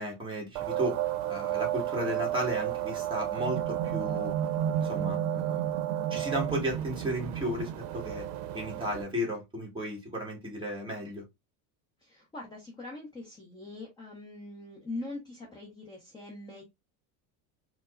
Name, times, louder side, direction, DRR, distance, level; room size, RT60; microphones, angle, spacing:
voice 1, 0.0-4.3 4.7-5.6 6.1-8.3 8.5-11.2, equal, 10° right, 1.2 m, -34 dB
sound 1, 0.6-9.0, right 11 dB, 85° right, 0.6 m, -32 dB
voice 2, 12.0-16.6, left 2 dB, 10° left, 0.5 m, -42 dB
4.5 x 2.0 x 2.4 m
cardioid pair, 145°, 49 cm